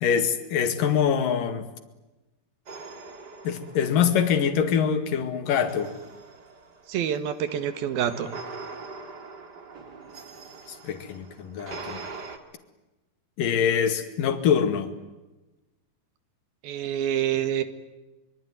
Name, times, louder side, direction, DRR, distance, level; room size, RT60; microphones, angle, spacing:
voice 1, 0.0-1.6 3.4-5.9 10.7-12.0 13.4-15.0, left 7 dB, 60° left, 9 dB, 3.5 m, -24 dB
sound 1, 2.7-4.7 5.6-12.4, right 4 dB, 35° right, 2.0 m, -43 dB
voice 2, 6.9-8.3 16.6-17.6, right 10 dB, 65° right, 11 dB, 3.4 m, -27 dB
25.5 x 23.5 x 9.5 m, 1.1 s
omnidirectional pair, 4.7 m